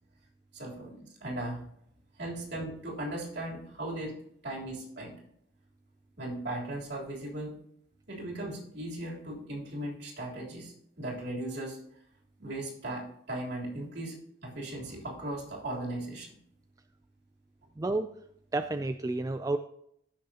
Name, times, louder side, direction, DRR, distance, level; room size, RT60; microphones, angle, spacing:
voice 1, 0.5-1.6 2.2-4.2 4.4-5.2 6.2-7.6 8.1-11.8 12.4-16.4, right 1 dB, 60° right, -3 dB, 3.4 m, -37 dB
voice 2, 17.8-18.1 18.5-19.6, right 2 dB, 20° right, 8 dB, 0.3 m, -30 dB
15.0 x 6.5 x 2.8 m, 0.71 s
head